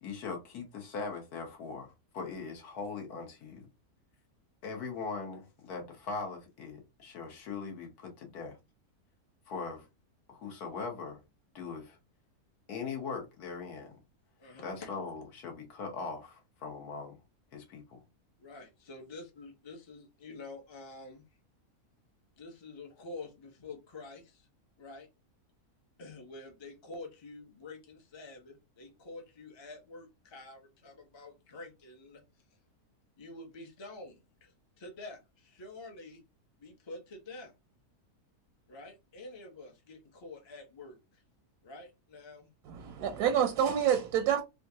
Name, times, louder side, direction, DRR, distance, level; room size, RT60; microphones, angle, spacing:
voice 1, 0.0-3.7 4.6-8.6 9.5-9.9 10.3-11.2 11.5-12.0 12.7-14.0 14.6-17.2 17.5-18.0, left 4 dB, 80° left, 1.5 m, -40 dB
voice 2, 14.4-14.7 18.4-21.2 22.4-24.5 24.8-25.1 26.0-32.2 33.2-36.2 36.6-37.5 38.7-41.2 41.6-42.5, left 2 dB, 40° left, 0.4 m, -48 dB
voice 3, 42.7-44.4, right 9 dB, 85° right, 1.1 m, -28 dB
3.7 x 2.4 x 2.7 m
omnidirectional pair, 1.6 m